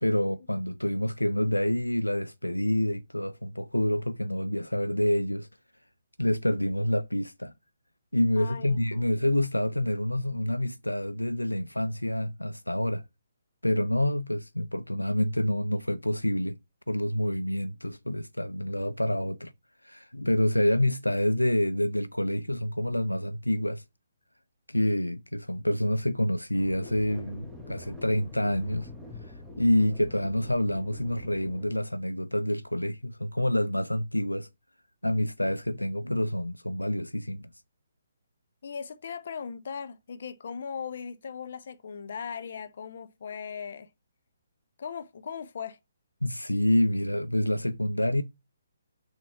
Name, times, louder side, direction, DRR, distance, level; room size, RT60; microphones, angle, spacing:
voice 1, 0.0-5.5 6.2-7.5 8.1-13.0 13.6-16.6 16.9-19.5 19.8-23.8 24.7-28.9 29.6-34.5 35.0-37.5 46.2-48.2, left 1 dB, 85° left, 0.5 m, -27 dB
voice 2, 8.4-9.1 38.6-43.9 44.8-45.8, left 6 dB, 50° left, 0.8 m, -38 dB
sound 1, 26.5-31.8, left 2 dB, 5° left, 1.2 m, -45 dB
6.2 x 4.4 x 5.7 m
figure-of-eight pair, 135°, 0 cm